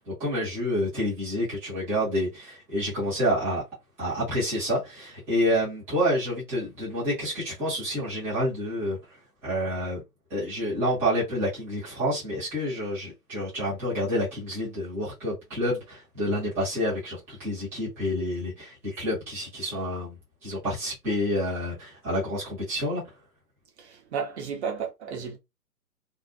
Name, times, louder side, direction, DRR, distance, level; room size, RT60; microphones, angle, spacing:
voice 1, 0.2-3.6 4.0-9.0 9.4-10.0 10.3-23.0, equal, 5° right, 0.7 m, -28 dB
voice 2, 23.8-25.4, right 6 dB, 40° right, 0.9 m, -33 dB
2.4 x 2.1 x 2.5 m
hypercardioid pair, 140°, 49 cm